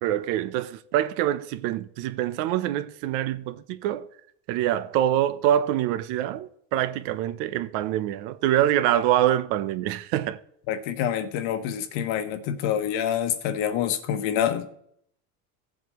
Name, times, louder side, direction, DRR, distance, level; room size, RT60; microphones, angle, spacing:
voice 1, 0.0-4.1 4.5-10.4, right 12 dB, 65° right, 0.9 m, -25 dB
voice 2, 10.7-14.7, left 9 dB, 65° left, 1.3 m, -27 dB
17.0 x 7.6 x 3.1 m
cardioid pair, 140°, 47 cm